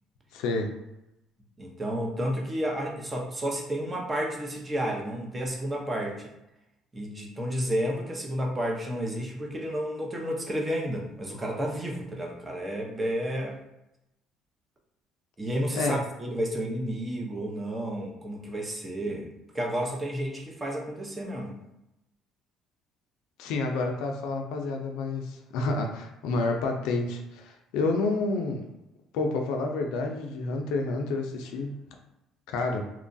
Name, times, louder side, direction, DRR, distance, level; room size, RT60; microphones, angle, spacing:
voice 1, 0.3-0.7 15.7-16.0 23.4-28.7 29.1-31.7 32.5-32.8, left 3 dB, 85° left, 3 dB, 0.4 m, -29 dB
voice 2, 1.6-6.3 6.9-13.6 15.4-19.3 19.5-21.5, equal, 20° right, 0 dB, 0.6 m, -31 dB
2.9 x 2.3 x 2.5 m, 0.89 s
cardioid pair, 100°, 0 cm